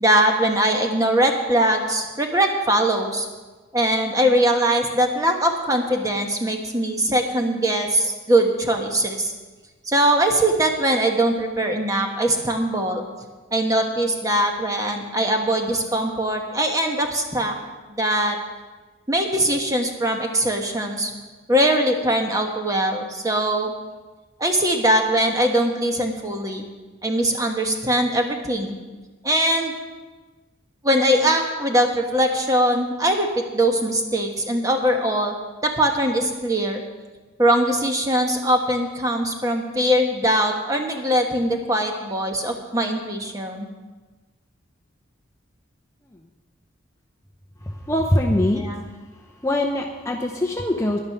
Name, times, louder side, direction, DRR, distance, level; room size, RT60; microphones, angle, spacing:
voice 1, 0.0-3.3 3.7-9.3 9.9-13.0 13.5-17.6 17.9-18.4 19.1-21.1 21.5-23.7 24.4-26.7 27.0-28.8 29.2-29.7 30.8-35.3 35.6-36.8 37.4-43.7 48.5-48.8, right 1 dB, 15° right, 3 dB, 1.2 m, -21 dB
voice 2, 47.7-48.6 49.4-51.0, left 1 dB, 15° left, 0 dB, 0.7 m, -22 dB
11.0 x 10.5 x 5.8 m, 1.3 s
head